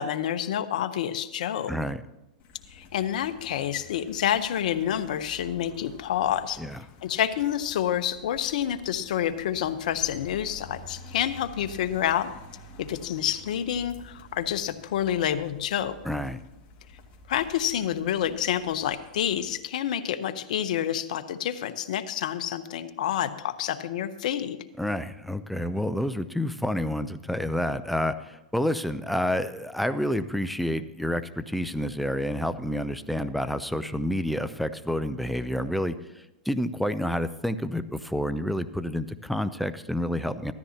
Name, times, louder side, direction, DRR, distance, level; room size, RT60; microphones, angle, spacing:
voice 1, 0.0-1.7 2.7-6.6 7.0-12.3 12.8-16.0 17.3-24.6, left 10 dB, 70° left, 11 dB, 0.9 m, -28 dB
voice 2, 1.7-2.0 6.6-6.8 16.0-16.4 24.8-40.5, equal, ahead, 11 dB, 0.6 m, -29 dB
sound 1, 2.4-19.5, left 2 dB, 35° left, 2.1 m, -49 dB
16.0 x 13.5 x 2.9 m, 0.94 s
hypercardioid pair, 125°, 4 cm